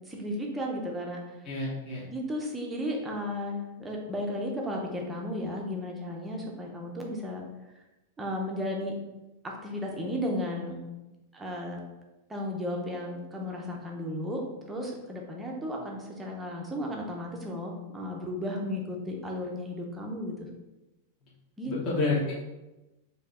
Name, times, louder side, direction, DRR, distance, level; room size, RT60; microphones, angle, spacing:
voice 1, 0.1-1.2 2.1-7.4 8.2-8.9 9.4-10.9 11.3-11.8 12.3-20.3 21.6-21.7, left 1 dB, 5° right, -1 dB, 0.6 m, -34 dB
voice 2, 1.4-2.0 21.6-22.3, left 3 dB, 25° left, -6 dB, 0.9 m, -29 dB
4.6 x 2.7 x 4.2 m, 1.0 s
supercardioid pair, 175°, 0 cm